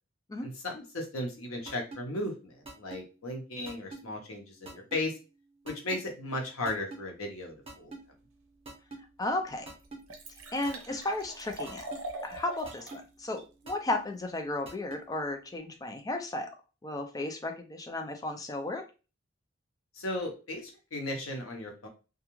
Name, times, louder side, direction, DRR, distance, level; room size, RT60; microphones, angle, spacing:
voice 1, 0.4-5.1 5.6-7.9 20.0-21.9, left 1 dB, 85° left, 2 dB, 0.8 m, -36 dB
sound 1, 1.7-2.0 2.6-3.0 3.7-4.0 4.7-5.0 5.7-6.0 6.7-7.0 7.7-8.0 8.7-9.0 9.7-10.0 10.7-11.0 11.7-12.0 12.7-13.0 13.7-14.0 14.7-15.0, right 2 dB, 30° right, 0.7 m, -43 dB
Liquid, 8.9-9.0 9.5-9.6 9.8-13.0 13.4-13.5, right 1 dB, 90° right, 0.7 m, -42 dB
voice 2, 9.2-9.7 10.5-11.8 12.2-16.5 16.8-18.8, left 2 dB, 20° left, 5 dB, 0.3 m, -34 dB
2.3 x 2.3 x 3.0 m, 0.32 s
head